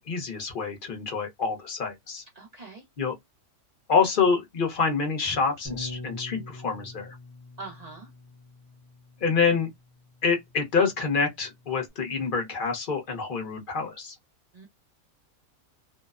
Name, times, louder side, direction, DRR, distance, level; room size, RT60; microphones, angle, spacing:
voice 1, 0.1-2.2 3.0-3.2 3.9-7.1 9.2-9.7 10.2-14.1, left 5 dB, 45° left, 0.8 m, -26 dB
voice 2, 2.3-2.8 7.6-8.1 14.5-14.7, right 3 dB, 75° right, 0.3 m, -42 dB
Bass guitar, 5.6-11.9, left 2 dB, 25° right, 0.7 m, -44 dB
2.6 x 2.1 x 2.3 m
omnidirectional pair, 1.5 m